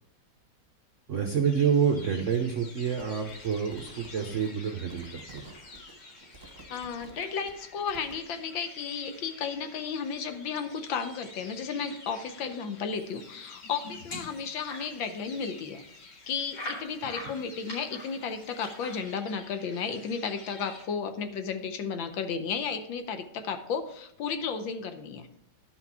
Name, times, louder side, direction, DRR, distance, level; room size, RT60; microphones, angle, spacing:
voice 1, 1.1-5.5, right 7 dB, 65° right, 4 dB, 0.7 m, -28 dB
sound 1, 1.4-20.9, left 3 dB, 40° left, 1.0 m, -50 dB
sound 2, 2.8-8.2, right 3 dB, 25° right, 1.3 m, -52 dB
voice 2, 6.7-15.8 16.3-25.3, left 6 dB, 70° left, 8 dB, 1.5 m, -33 dB
sound 3, 13.3-14.9 15.4-15.5 15.7-15.8 16.5-19.0, left 1 dB, 90° left, 5.3 m, -41 dB
11.5 x 5.8 x 4.7 m, 0.70 s
omnidirectional pair, 2.4 m